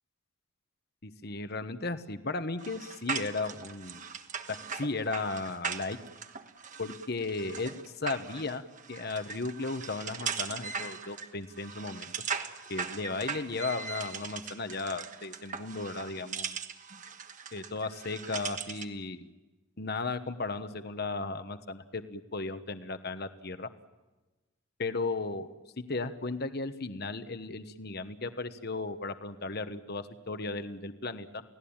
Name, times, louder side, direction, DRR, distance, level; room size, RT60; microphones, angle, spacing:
voice 1, 1.0-4.0 4.5-6.0 6.8-8.6 8.9-12.1 12.7-16.6 17.5-19.3 19.8-23.7 24.8-25.5 25.8-31.4, left 3 dB, 50° left, 10 dB, 1.2 m, -35 dB
sound 1, 2.6-19.0, right 6 dB, 35° right, 1.3 m, -39 dB
29.5 x 18.0 x 8.9 m, 1.1 s
head